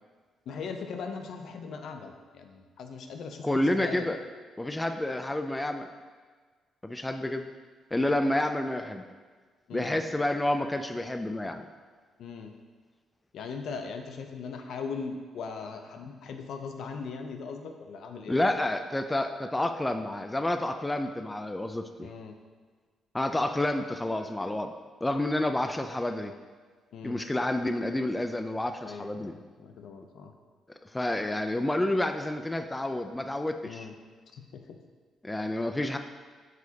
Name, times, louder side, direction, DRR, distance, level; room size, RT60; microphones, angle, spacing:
voice 1, 0.5-4.1 9.7-10.0 12.2-12.5 13.3-18.5 22.0-22.3 26.9-27.2 28.8-30.3 33.6-33.9 34.3-34.8, left 5 dB, 70° left, 5 dB, 0.6 m, -39 dB
voice 2, 3.4-4.2 4.6-5.9 6.8-7.5 7.9-9.0 9.7-11.7 18.3-22.1 23.1-24.7 25.0-26.3 27.0-29.3 30.9-33.9 35.2-36.0, left 1 dB, 10° left, 7 dB, 0.3 m, -29 dB
7.6 x 5.0 x 2.8 m, 1.5 s
cardioid pair, 90°, 0 cm